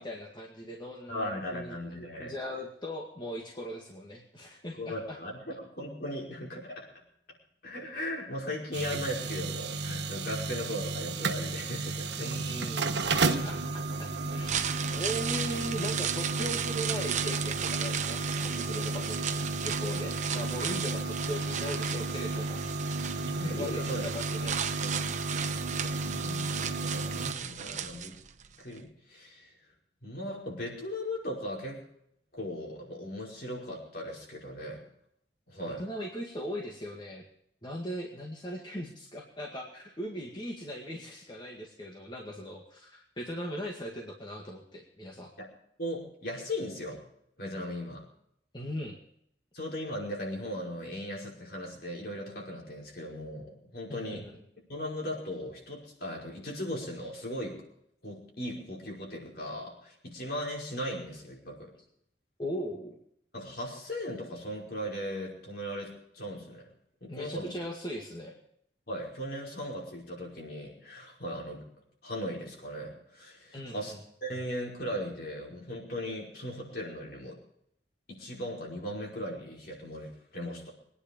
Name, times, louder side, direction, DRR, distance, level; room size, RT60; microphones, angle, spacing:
voice 1, 0.0-5.2 12.2-22.6 23.4-24.6 25.9-26.0 35.7-37.2 37.6-45.3 48.5-48.9 53.9-54.2 62.4-63.0 67.1-68.4 73.5-74.0, equal, 25° left, -1 dB, 2.0 m, -39 dB
voice 2, 1.1-2.4 4.6-6.9 7.6-12.4 23.2-24.2 24.8-24.9 25.8-28.2 28.6-29.5 30.0-31.8 32.3-34.8 35.5-35.8 45.4-45.5 45.8-47.0 47.4-48.0 49.5-54.2 54.7-57.7 58.0-61.7 63.3-66.7 67.0-67.5 68.9-71.6 72.0-73.9 74.2-77.4 78.1-80.7, equal, 60° left, -2 dB, 5.3 m, -38 dB
sound 1, 8.7-27.3, right 3 dB, 80° right, 1.2 m, -33 dB
sound 2, 14.3-28.5 28.8-28.9, right 8 dB, 45° right, 0.9 m, -35 dB
23.0 x 10.0 x 5.3 m, 0.71 s
head